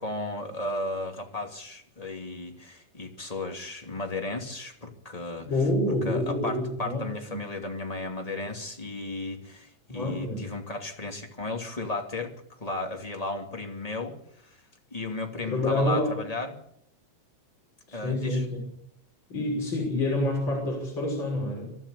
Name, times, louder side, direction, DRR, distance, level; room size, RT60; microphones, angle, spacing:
voice 1, 0.0-5.5 6.0-14.2 14.4-14.6 14.9-16.6 17.9-18.4, left 2 dB, 10° left, 3 dB, 2.4 m, -34 dB
voice 2, 5.4-7.4 9.9-10.5 15.5-16.2 17.9-18.6 19.3-21.8, left 1 dB, 35° left, -2 dB, 6.6 m, -28 dB
24.0 x 13.0 x 8.7 m, 0.72 s
omnidirectional pair, 3.7 m